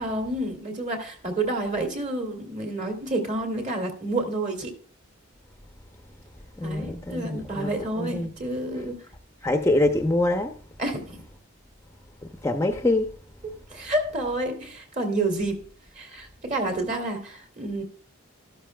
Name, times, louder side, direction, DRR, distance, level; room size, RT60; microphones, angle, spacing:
voice 1, 0.0-4.7 6.6-9.0 10.8-11.2 13.7-15.6 15.9-17.8, right 2 dB, 40° right, 2.5 m, -29 dB
voice 2, 6.6-7.7 8.0-8.3 9.4-10.5 12.4-13.1, left 2 dB, 15° left, 0.7 m, -24 dB
13.0 x 12.5 x 2.3 m
head